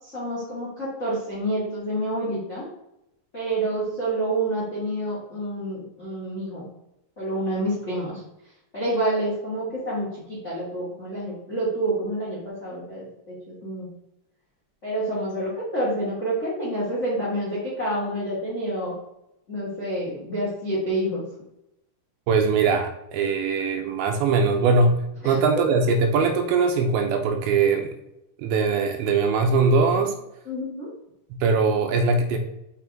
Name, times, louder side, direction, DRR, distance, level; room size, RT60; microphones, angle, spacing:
voice 1, 0.0-2.7 3.3-6.7 7.2-8.2 8.7-13.9 14.8-18.9 19.5-21.2 25.2-25.7 30.4-30.9, right 1 dB, 80° left, -7 dB, 0.6 m, -28 dB
voice 2, 22.3-25.0 25.3-27.9 28.4-30.1 31.4-32.4, right 4 dB, 80° right, 5 dB, 2.8 m, -21 dB
6.0 x 5.8 x 3.5 m, 0.86 s
omnidirectional pair, 5.3 m